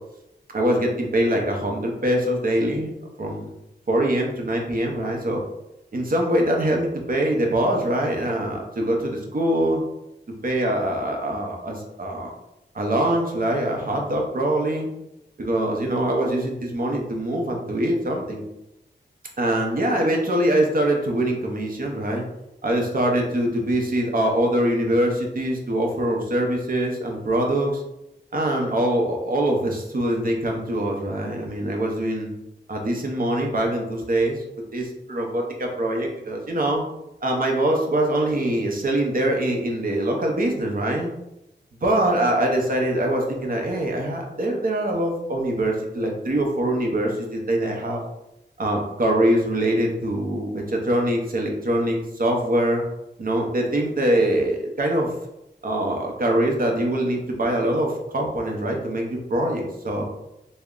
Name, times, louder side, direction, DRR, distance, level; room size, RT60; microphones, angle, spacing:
voice 1, 0.5-3.5 3.9-5.4 5.9-9.8 10.4-12.3 12.7-14.9 15.4-18.4 19.4-22.2 22.6-27.8 28.3-32.3 32.7-34.4 34.7-36.8 37.2-41.1 41.8-48.0 48.6-52.8 53.2-55.1 55.6-60.1, right 1 dB, 50° right, 1 dB, 0.7 m, -23 dB
3.5 x 2.1 x 3.6 m, 0.89 s
wide cardioid pair, 95°, 18 cm